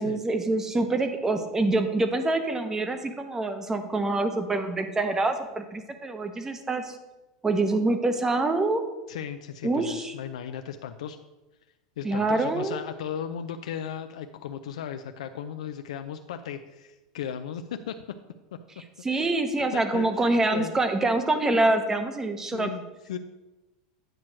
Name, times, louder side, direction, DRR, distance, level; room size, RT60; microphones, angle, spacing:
voice 1, 0.0-7.0 7.4-8.8 9.6-10.1 12.0-12.8 19.0-22.7, right 2 dB, 15° right, 8 dB, 0.7 m, -25 dB
voice 2, 9.1-11.2 12.0-18.2 18.5-18.6 19.1-19.3 19.7-20.7 22.5-22.8 23.1-23.2, left 8 dB, 85° left, 8 dB, 0.4 m, -36 dB
8.9 x 3.1 x 6.1 m, 1.1 s
supercardioid pair, 120°, 3 cm